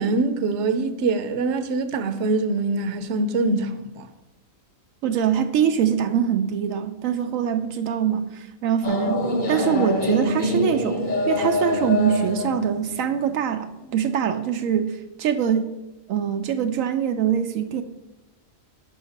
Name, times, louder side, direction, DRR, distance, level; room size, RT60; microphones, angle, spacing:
voice 1, 0.0-4.1, right 3 dB, 65° right, 1.0 m, -24 dB
voice 2, 5.0-9.2 9.5-15.7 16.1-17.8, right 9 dB, 85° right, 1.0 m, -23 dB
sound 1, 8.8-13.9, left 2 dB, 40° left, 1.1 m, -25 dB
11.5 x 5.6 x 4.1 m
omnidirectional pair, 1.4 m